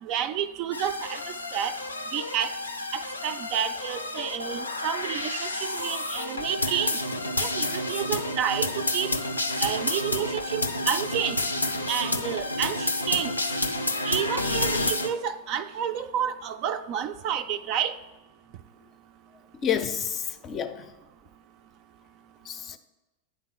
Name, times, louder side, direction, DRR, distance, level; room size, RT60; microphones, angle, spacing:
voice 1, 0.0-1.8 2.1-2.6 2.9-7.0 7.4-9.1 9.6-11.4 11.9-13.3 14.0-17.9, right 9 dB, 40° right, 0.4 m, -30 dB
sound 1, 0.7-15.1, left 2 dB, 85° left, 0.5 m, -30 dB
voice 2, 19.5-20.9 22.4-22.8, left 8 dB, 30° left, 0.5 m, -30 dB
9.3 x 3.7 x 4.7 m
figure-of-eight pair, 90°, 0 cm